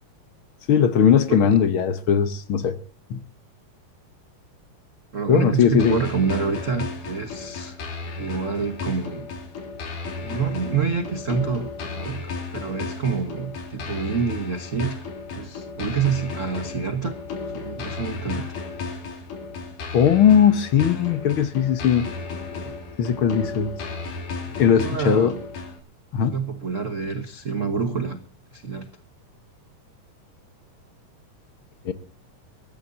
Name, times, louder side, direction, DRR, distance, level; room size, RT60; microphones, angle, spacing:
voice 1, 0.7-2.8 3.1-3.2 5.3-6.0 19.9-22.1 23.0-23.7 24.6-25.3 26.1-26.3 31.8-31.9, left 8 dB, 60° left, 12 dB, 1.4 m, -19 dB
voice 2, 5.1-7.8 8.2-9.3 10.2-12.2 12.5-15.0 15.3-17.2 17.5-18.5 22.6-22.7 24.4-25.4 26.3-28.2 28.5-28.9, right 5 dB, 55° right, 8 dB, 0.8 m, -27 dB
sound 1, 5.8-25.8, left 4 dB, 75° left, 4.8 m, -34 dB
24.0 x 14.5 x 2.7 m, 0.36 s
omnidirectional pair, 3.7 m